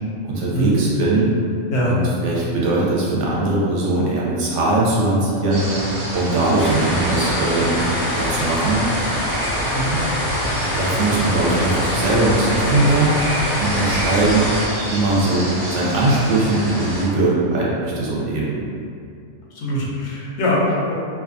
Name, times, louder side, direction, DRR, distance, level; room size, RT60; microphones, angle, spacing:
voice 1, 0.2-1.3 1.8-5.7 6.1-7.8 8.1-8.8 10.6-13.1 13.6-14.5 14.9-18.6, right 2 dB, 65° right, -6 dB, 0.8 m, -20 dB
sound 1, 5.5-17.1, right 1 dB, 30° right, 0.9 m, -28 dB
sound 2, 6.6-14.6, left 1 dB, 80° left, 1.1 m, -24 dB
voice 2, 19.5-20.9, equal, 65° left, -4 dB, 0.8 m, -22 dB
2.5 x 2.3 x 2.5 m, 2.4 s
omnidirectional pair, 1.4 m